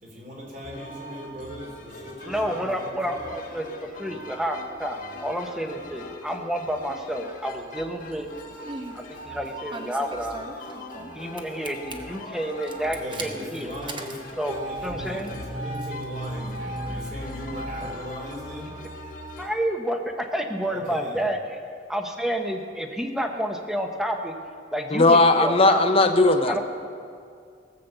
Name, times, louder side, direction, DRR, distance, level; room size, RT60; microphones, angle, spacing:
voice 1, 0.0-3.2 12.8-18.7 20.7-21.2, equal, 45° right, -2 dB, 3.5 m, -39 dB
sound 1, 0.6-19.5, left 1 dB, 50° left, 1.5 m, -42 dB
voice 2, 2.2-8.3 8.9-10.4 11.1-13.7 14.4-15.3 19.4-21.6 21.9-24.3 24.7-25.8 26.4-26.6, equal, 5° right, 4 dB, 1.0 m, -29 dB
Engine starting, 8.4-9.0 9.7-11.1 11.4-11.9 12.6-17.9, right 1 dB, 25° right, 1.0 m, -35 dB
voice 3, 24.9-26.6, left 2 dB, 35° left, 7 dB, 0.8 m, -18 dB
17.5 x 7.7 x 6.8 m, 2.3 s
head